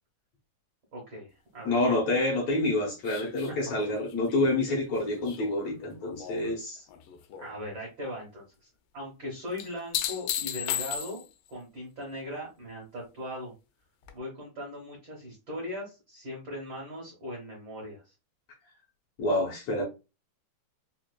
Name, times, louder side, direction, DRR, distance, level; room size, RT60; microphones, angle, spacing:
voice 1, 0.9-1.8 3.5-3.6 7.4-8.7 8.9-11.2 11.5-13.5 14.1-18.1, left 1 dB, 75° right, -2 dB, 1.1 m, -39 dB
voice 2, 1.6-6.8 19.2-19.8, left 2 dB, 70° left, -1 dB, 1.8 m, -27 dB
sound 1, 3.1-6.5 6.9-7.5 9.6-11.5 14.1-14.2, left 10 dB, 85° left, 2.2 m, -36 dB
5.0 x 2.4 x 2.2 m, 0.29 s
omnidirectional pair, 3.8 m